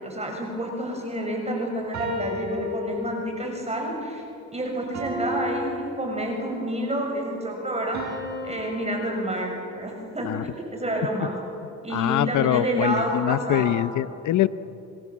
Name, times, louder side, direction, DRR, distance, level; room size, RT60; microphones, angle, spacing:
voice 1, 0.0-4.2 4.5-8.0 8.4-10.3 10.6-11.3 11.8-13.7, right 1 dB, 20° right, 1 dB, 6.6 m, -29 dB
sound 1, 1.9-3.5 4.9-6.6 7.9-9.8, left 1 dB, 65° right, 7.1 m, -34 dB
voice 2, 11.9-14.5, left 12 dB, 75° left, 15 dB, 0.8 m, -23 dB
27.5 x 26.5 x 7.4 m, 2.9 s
cardioid pair, 90°, 30 cm